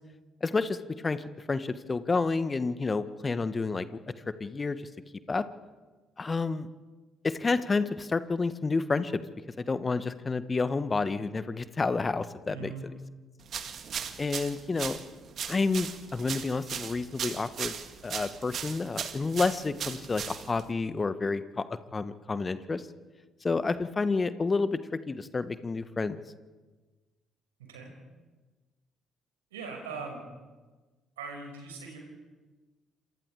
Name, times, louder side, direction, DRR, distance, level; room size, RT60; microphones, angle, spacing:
voice 1, 0.4-0.8 1.0-3.9 4.3-4.8 5.3-5.5 6.2-6.7 7.2-9.2 9.7-12.7 14.2-15.0 15.5-17.7 18.0-21.6 21.9-22.8 23.4-24.8 25.1-26.2, left 4 dB, 30° left, 13 dB, 1.5 m, -29 dB
voice 2, 12.5-12.9 27.6-27.9 29.5-30.2 31.2-32.0, right 5 dB, 80° right, 1 dB, 5.6 m, -40 dB
sound 1, 13.5-20.7, right 7 dB, 50° right, 1.9 m, -38 dB
28.0 x 26.5 x 4.9 m, 1.3 s
figure-of-eight pair, 45°, 0 cm